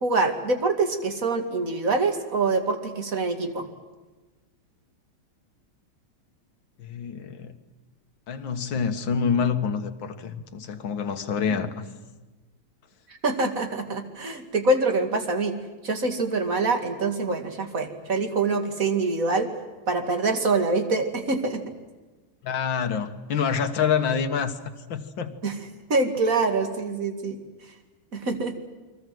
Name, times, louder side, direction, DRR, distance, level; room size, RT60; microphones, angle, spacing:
voice 1, 0.0-3.7 13.2-15.6 15.8-19.5 19.9-21.6 25.4-25.6 25.9-27.4 28.1-28.5, right 3 dB, 40° right, 2.7 m, -25 dB
voice 2, 6.8-7.5 8.3-11.8 22.4-24.5 24.9-25.3, left 6 dB, 65° left, 2.2 m, -27 dB
29.5 x 22.5 x 7.8 m
omnidirectional pair, 2.3 m